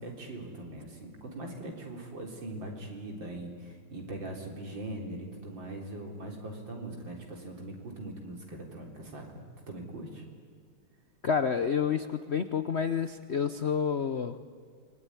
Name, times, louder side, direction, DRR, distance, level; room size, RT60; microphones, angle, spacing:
voice 1, 0.0-10.2, right 1 dB, 65° right, 1 dB, 4.5 m, -41 dB
voice 2, 11.2-14.4, left 7 dB, 55° left, 10 dB, 0.7 m, -29 dB
28.0 x 21.0 x 9.8 m, 2.1 s
omnidirectional pair, 2.2 m